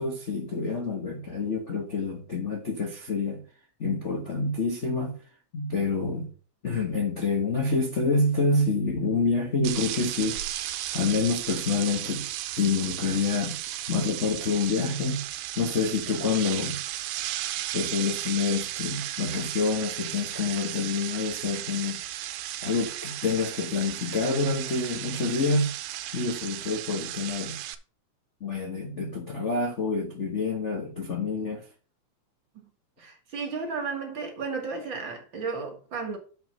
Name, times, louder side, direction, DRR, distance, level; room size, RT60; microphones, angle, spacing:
voice 1, 0.0-3.4 3.8-5.1 5.5-6.3 6.6-12.3 12.5-13.6 13.9-15.2 15.6-16.8 17.7-22.0 22.6-25.7 26.1-27.6 28.4-31.7, left 4 dB, 75° left, 0.6 m, -27 dB
sound 1, 9.6-27.8, right 13 dB, 90° right, 2.2 m, -35 dB
voice 2, 33.0-36.2, right 4 dB, 45° right, 2.0 m, -33 dB
7.3 x 5.2 x 5.5 m
omnidirectional pair, 3.5 m